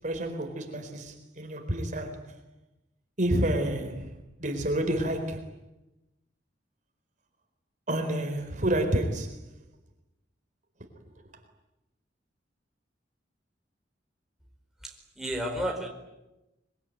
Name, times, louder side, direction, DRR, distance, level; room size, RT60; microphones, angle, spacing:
voice 1, 0.0-2.4 3.2-4.1 4.4-5.5 7.9-9.4, right 1 dB, 40° right, 5 dB, 4.2 m, -29 dB
voice 2, 14.8-15.9, equal, ahead, 0 dB, 4.7 m, -32 dB
25.5 x 23.5 x 9.4 m, 0.96 s
head